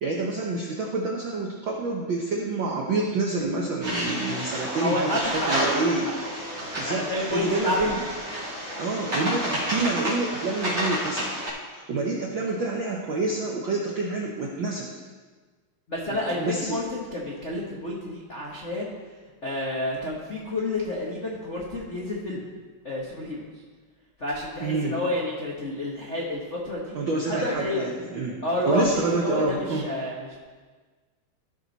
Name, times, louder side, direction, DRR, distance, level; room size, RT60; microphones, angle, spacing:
voice 1, 0.0-6.1 6.8-8.0 8.8-11.3 11.6-14.9 16.1-16.8 24.6-25.0 26.9-28.4 28.7-29.8, right 3 dB, 75° right, -1 dB, 1.1 m, -28 dB
sound 1, 3.8-11.5, equal, 15° right, 3.0 m, -30 dB
voice 2, 4.8-6.1 6.6-7.9 15.9-18.9 19.4-22.4 22.8-23.5 24.2-27.0 27.3-27.9 28.4-30.4, left 1 dB, 85° left, -4 dB, 0.6 m, -30 dB
15.0 x 6.1 x 4.1 m, 1.4 s
omnidirectional pair, 3.5 m